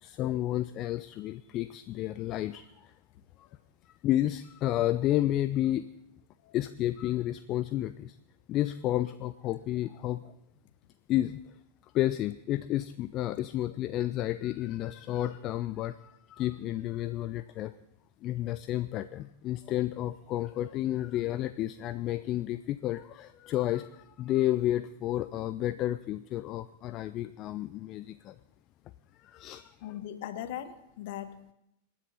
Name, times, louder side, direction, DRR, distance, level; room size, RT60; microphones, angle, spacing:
voice 1, 0.0-2.9 3.4-3.5 3.9-5.9 6.5-8.2 8.5-10.3 11.1-11.4 11.9-17.7 18.2-28.4 29.2-29.7, left 14 dB, 35° left, 13 dB, 0.5 m, -31 dB
voice 2, 29.8-31.5, left 11 dB, 50° left, 11 dB, 1.3 m, -39 dB
26.0 x 10.0 x 4.1 m, 0.82 s
figure-of-eight pair, 90°, 0 cm